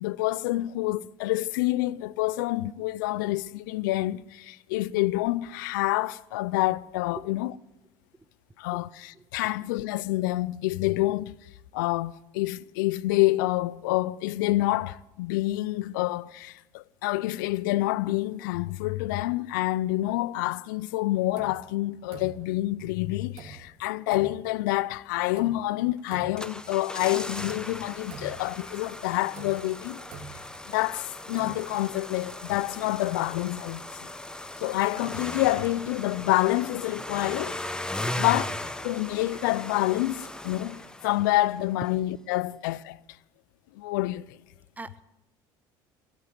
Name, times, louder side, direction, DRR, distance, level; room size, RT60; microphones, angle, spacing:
voice 1, 0.0-7.5 8.6-11.3 11.7-30.0 30.7-33.8 34.6-37.6 38.2-38.4 38.8-43.0 43.8-44.2, left 17 dB, 85° left, 0.4 m, -27 dB
voice 2, 7.2-7.3 8.7-8.8 9.1-9.2 38.0-38.2 44.8-45.0, right 3 dB, 15° right, 0.8 m, -41 dB
sound 1, 21.4-21.7 22.1-22.6 23.4-23.7 24.1-24.5 25.4-25.7 26.1-26.6 27.4-27.7 28.1-28.6 29.3-30.9 31.2-31.6, right 5 dB, 65° right, 2.9 m, -44 dB
sound 2, 26.1-41.6 41.8-41.9, left 1 dB, 10° left, 1.0 m, -38 dB
16.0 x 8.2 x 9.2 m
supercardioid pair, 90°, 10 cm